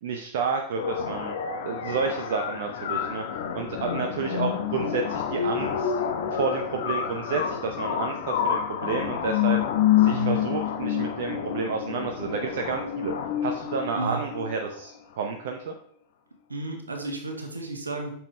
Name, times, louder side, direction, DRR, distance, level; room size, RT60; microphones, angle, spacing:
voice 1, 0.0-1.3 1.6-5.9 6.3-9.6 10.0-13.1 13.4-15.7, right 5 dB, 55° right, 4 dB, 0.8 m, -30 dB
sound 1, 0.8-14.8, left 9 dB, 60° left, 0.9 m, -28 dB
voice 2, 10.1-10.4 13.9-14.3 16.5-18.1, right 3 dB, 80° right, 3 dB, 1.5 m, -32 dB
8.6 x 6.3 x 3.3 m, 0.64 s
figure-of-eight pair, 90°, 0 cm